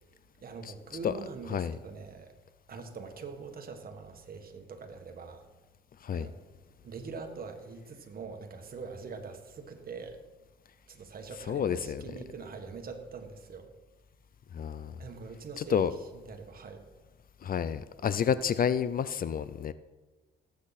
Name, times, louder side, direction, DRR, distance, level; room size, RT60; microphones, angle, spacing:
voice 1, 0.4-2.3 2.7-5.4 6.1-6.3 6.8-10.2 10.9-13.7 15.0-15.9 16.3-16.8, right 4 dB, 50° right, 5 dB, 1.7 m, -43 dB
voice 2, 11.5-12.0 14.5-15.0 15.6-15.9 17.4-19.7, left 8 dB, 45° left, 15 dB, 0.6 m, -29 dB
18.0 x 8.6 x 4.2 m, 1.2 s
cardioid pair, 90°, 20 cm